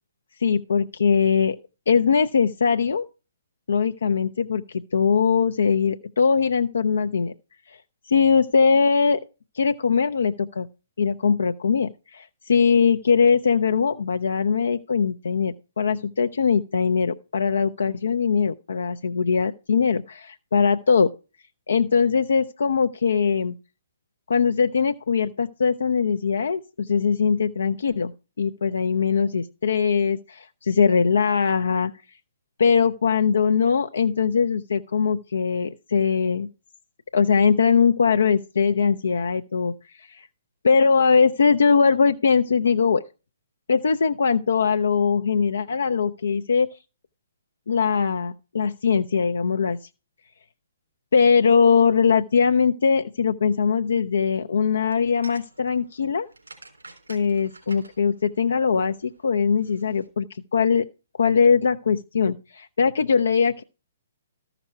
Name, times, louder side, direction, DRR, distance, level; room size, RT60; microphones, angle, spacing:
voice 1, 0.4-1.6 1.9-3.1 3.7-7.3 8.1-9.2 9.5-10.7 11.0-21.1 21.7-23.5 24.3-28.1 28.4-31.9 32.6-36.5 37.1-39.7 40.1-40.3 40.6-43.0 43.7-46.7 47.7-49.8 51.1-56.3 57.1-60.3 60.5-60.9 61.2-63.6, left 6 dB, 60° left, 0.5 m, -21 dB
sound 1, 54.7-60.1, right 3 dB, 75° right, 3.4 m, -50 dB
13.5 x 5.9 x 5.6 m
figure-of-eight pair, 125°, 0 cm